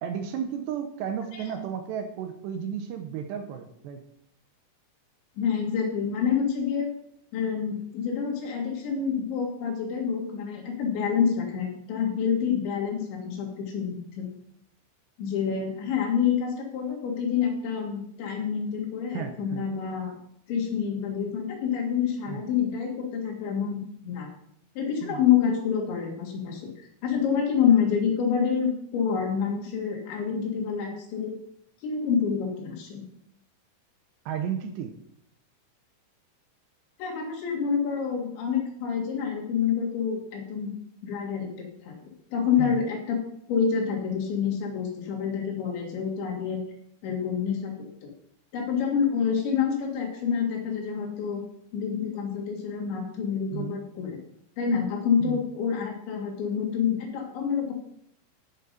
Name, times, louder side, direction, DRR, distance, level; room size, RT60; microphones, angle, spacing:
voice 1, 0.0-4.0 19.1-19.6 22.3-22.4 25.0-25.2 34.3-34.9 42.6-42.8 53.5-53.8 55.2-55.4, right 8 dB, 80° right, 6 dB, 2.7 m, -33 dB
voice 2, 5.4-6.9 7.3-14.3 15.2-20.2 20.5-24.3 24.8-26.7 27.0-31.3 31.8-33.0 37.0-40.7 41.0-41.5 41.8-43.2 43.5-46.6 47.0-48.1 48.5-51.4 51.7-54.2 54.6-57.7, left 7 dB, 70° left, 0 dB, 4.4 m, -27 dB
11.0 x 6.7 x 5.3 m, 0.71 s
omnidirectional pair, 5.5 m